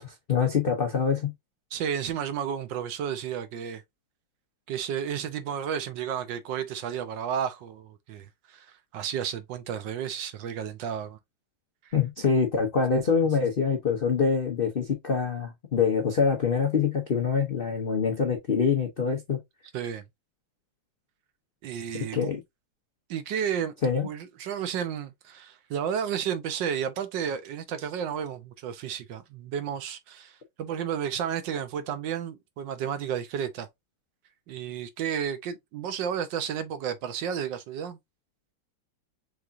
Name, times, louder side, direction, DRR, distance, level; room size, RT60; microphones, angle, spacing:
voice 1, 0.0-1.3 11.9-19.4 21.9-22.4 23.8-24.1, left 6 dB, 60° left, 0.5 m, -25 dB
voice 2, 1.7-3.8 4.7-11.2 11.8-11.9 19.7-20.0 21.6-22.3 23.1-23.7 24.0-33.7 34.5-38.0, right 8 dB, 70° right, 1.3 m, -32 dB
4.8 x 3.6 x 2.6 m
omnidirectional pair, 2.2 m